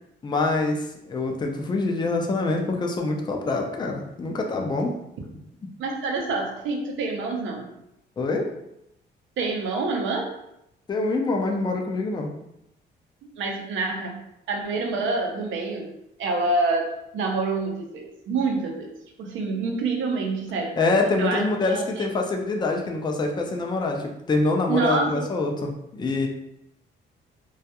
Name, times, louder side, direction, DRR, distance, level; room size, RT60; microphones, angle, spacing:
voice 1, 0.2-4.9 8.2-8.5 10.9-12.3 20.8-26.3, left 3 dB, 20° left, 2 dB, 0.4 m, -25 dB
voice 2, 5.8-7.7 9.4-10.3 13.3-14.2 14.5-15.9 16.2-18.9 19.2-20.8 21.1-22.0 24.7-25.2, right 3 dB, 75° right, 2 dB, 0.6 m, -27 dB
2.3 x 2.1 x 2.8 m, 0.81 s
cardioid pair, 90°, 20 cm